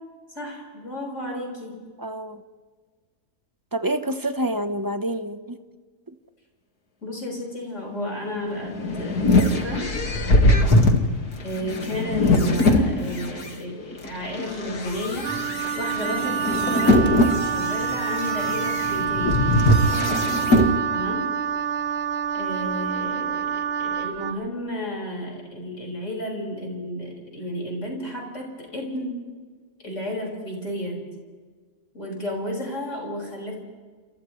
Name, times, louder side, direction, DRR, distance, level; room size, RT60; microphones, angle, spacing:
voice 1, 0.3-1.8 7.0-9.9 11.4-15.3 15.7-19.4 20.9-21.4 22.3-29.2 29.8-31.0 31.9-33.6, left 1 dB, 50° left, -1 dB, 6.4 m, -32 dB
voice 2, 2.0-2.4 3.7-5.6 6.1-6.2 19.9-20.3, right 1 dB, 15° right, 8 dB, 0.9 m, -28 dB
sound 1, 8.5-13.5 14.1-20.7, left 1 dB, 80° left, 2.5 m, -22 dB
sound 2, 11.4-11.5 12.2-12.3 12.6-13.4 13.9-14.7 15.3-17.9 18.6-18.7, left 1 dB, 5° left, 1.4 m, -31 dB
Wind instrument woodwind instrument, 15.2-24.4, right 7 dB, 55° right, 0.7 m, -27 dB
28.5 x 28.0 x 3.3 m, 1.5 s
omnidirectional pair, 1.6 m